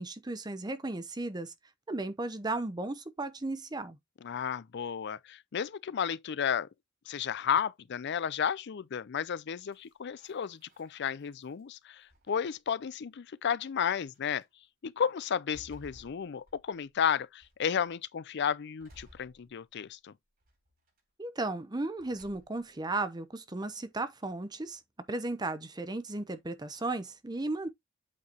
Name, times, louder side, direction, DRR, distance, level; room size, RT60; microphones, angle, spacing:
voice 1, 0.0-1.5 1.9-4.0 21.2-24.8 25.1-27.7, right 2 dB, 20° right, 0.8 m, -35 dB
voice 2, 4.2-6.7 7.1-14.4 14.8-20.1, left 7 dB, 60° left, 0.5 m, -33 dB
sound 1, 9.7-11.6 12.1-12.8 13.6-13.7 14.1-14.5 15.0-17.0 17.4-17.9 18.8-20.0 20.4-21.0 22.0-22.8, equal, 50° right, 4.3 m, -59 dB
8.4 x 4.8 x 2.9 m
head